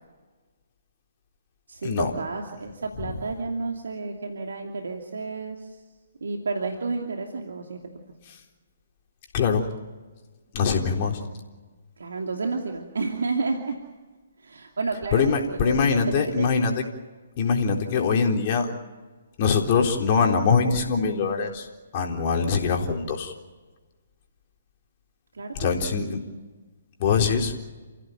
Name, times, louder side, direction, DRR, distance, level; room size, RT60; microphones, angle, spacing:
voice 1, 1.7-5.8 6.2-7.9 12.0-13.8 14.4-16.5 25.3-25.7 26.0-26.2, right 3 dB, 70° right, 2 dB, 2.7 m, -31 dB
voice 2, 9.3-9.7 10.5-11.2 15.1-16.8 17.4-18.7 19.4-21.7 21.9-23.3 25.5-26.2 27.0-27.5, left 5 dB, 40° left, 2 dB, 3.9 m, -23 dB
29.5 x 16.0 x 9.3 m, 1.3 s
figure-of-eight pair, 135°, 0 cm